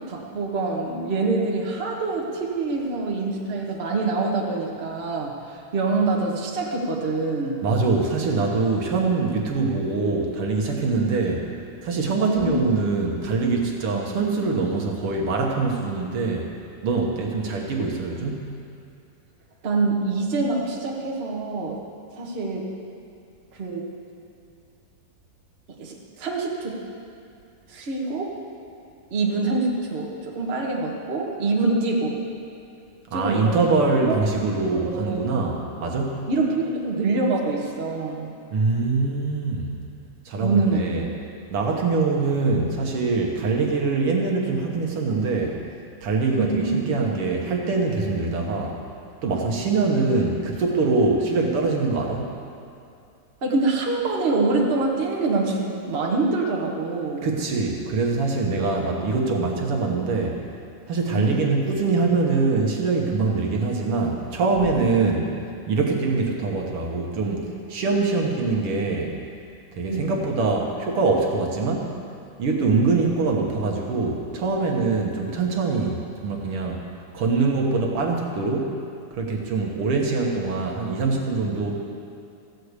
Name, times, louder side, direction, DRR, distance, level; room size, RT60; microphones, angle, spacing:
voice 1, 0.0-7.6 12.2-12.6 13.9-14.0 19.6-21.8 22.1-22.7 23.5-23.9 25.8-26.8 27.7-28.4 29.1-32.2 33.1-34.2 34.9-35.2 36.3-38.3 40.4-41.1 46.3-46.8 53.4-57.3 61.1-61.4 69.9-70.1, right 3 dB, 85° right, -2 dB, 0.5 m, -25 dB
voice 2, 7.6-16.5 16.8-18.5 33.1-36.3 38.5-39.8 40.2-41.0 41.5-45.6 46.0-48.8 49.2-52.3 57.2-60.4 60.9-65.3 65.7-69.1 69.7-71.9 72.4-76.8 77.1-78.7 79.1-81.7, right 3 dB, 60° right, 0 dB, 1.6 m, -23 dB
14.5 x 6.5 x 8.1 m, 2.5 s
omnidirectional pair, 3.7 m